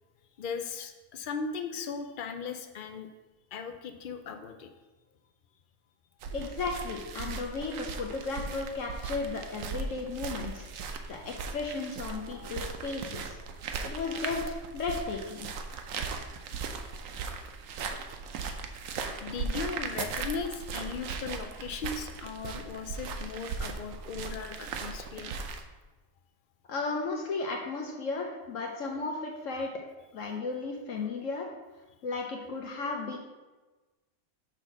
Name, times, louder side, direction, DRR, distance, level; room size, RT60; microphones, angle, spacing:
voice 1, 0.4-3.1 3.5-4.8 11.0-11.3 12.1-12.5 19.2-25.4, left 5 dB, 85° left, 6 dB, 0.4 m, -38 dB
sound 1, 6.2-25.6, right 5 dB, 70° right, 1.0 m, -38 dB
voice 2, 6.3-13.4 13.8-15.5 26.7-29.7 30.1-31.5 32.0-33.2, left 4 dB, 65° left, 0 dB, 1.1 m, -35 dB
5.8 x 4.1 x 5.8 m, 1.2 s
omnidirectional pair, 1.5 m